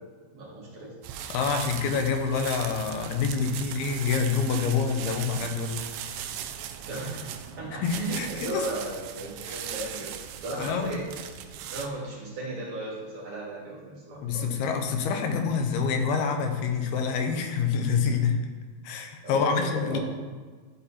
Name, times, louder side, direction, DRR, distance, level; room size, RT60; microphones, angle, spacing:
voice 1, 0.3-0.9 6.8-7.3 7.6-10.1 10.4-11.0 11.5-14.5 19.2-20.0, right 2 dB, 40° right, -6 dB, 2.9 m, -35 dB
sound 1, 1.0-11.9, right 9 dB, 80° right, 2.1 m, -38 dB
voice 2, 1.3-5.8 7.8-8.7 9.4-9.6 10.6-11.0 14.2-18.4 18.8-20.0, left 5 dB, 90° left, 4 dB, 2.8 m, -27 dB
12.5 x 4.2 x 4.2 m, 1.4 s
omnidirectional pair, 4.4 m